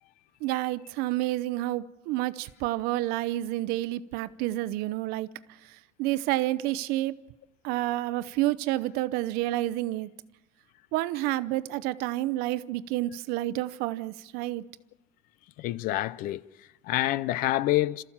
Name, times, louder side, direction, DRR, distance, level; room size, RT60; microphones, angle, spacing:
voice 1, 0.4-5.3 6.0-7.2 7.6-10.1 10.9-14.6, right 16 dB, 70° right, 0.7 m, -29 dB
voice 2, 15.6-18.0, left 16 dB, 55° left, 0.6 m, -28 dB
27.5 x 14.0 x 7.3 m
cardioid pair, 140°, 17 cm